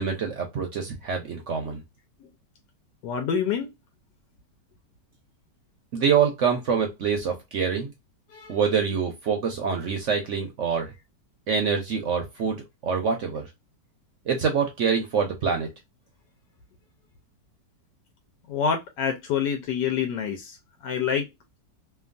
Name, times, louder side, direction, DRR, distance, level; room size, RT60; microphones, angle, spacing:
voice 1, 0.0-1.8 5.9-7.9 8.5-10.9 11.5-13.5 14.3-15.7, right 6 dB, 60° right, 0.8 m, -25 dB
voice 2, 3.0-3.7 8.3-8.6 18.5-20.6 20.8-21.3, left 7 dB, 80° left, 1.2 m, -27 dB
3.0 x 2.3 x 2.4 m
omnidirectional pair, 1.9 m